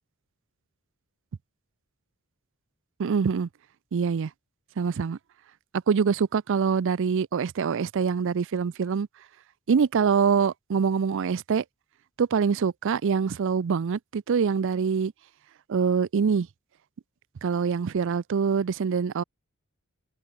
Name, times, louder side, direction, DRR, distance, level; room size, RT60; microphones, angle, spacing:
voice 1, 3.0-3.5 3.9-4.3 4.8-5.2 5.9-9.1 9.7-11.6 12.2-15.1 15.7-16.5 17.4-19.2, right 6 dB, 60° right, 0.4 m, -24 dB
head